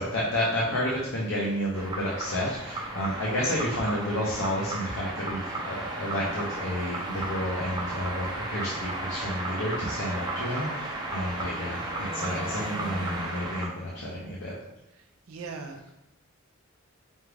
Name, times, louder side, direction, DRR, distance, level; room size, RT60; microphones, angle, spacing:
voice 1, 0.0-14.5, equal, 65° left, -4 dB, 0.7 m, -30 dB
sound 1, 1.7-13.7, right 2 dB, 20° right, 0.6 m, -34 dB
voice 2, 15.3-15.9, right 4 dB, 85° right, 4 dB, 0.5 m, -40 dB
5.3 x 2.4 x 3.3 m, 0.90 s
head